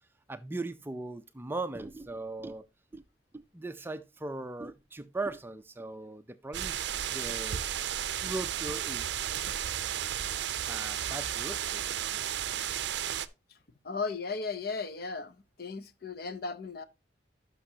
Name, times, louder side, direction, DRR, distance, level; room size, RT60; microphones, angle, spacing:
voice 1, 0.3-2.7 2.9-3.0 3.3-6.8 7.1-7.6 8.2-9.1 10.7-11.9, right 2 dB, 10° right, 0.4 m, -39 dB
sound 1, 6.5-13.3, right 10 dB, 65° right, 0.5 m, -33 dB
voice 2, 13.8-16.8, left 4 dB, 55° left, 0.7 m, -36 dB
11.5 x 6.0 x 2.7 m
head